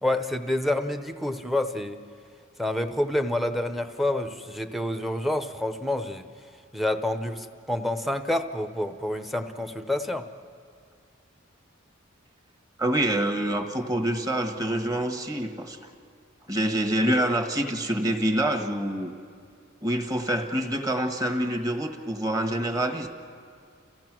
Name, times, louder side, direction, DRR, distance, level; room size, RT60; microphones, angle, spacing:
voice 1, 0.0-2.0 2.6-6.3 6.7-10.3, left 1 dB, ahead, 8 dB, 0.8 m, -28 dB
voice 2, 12.8-15.8 16.5-19.1 19.8-23.1, right 1 dB, 20° right, 4 dB, 1.4 m, -26 dB
29.5 x 16.0 x 6.1 m, 2.2 s
head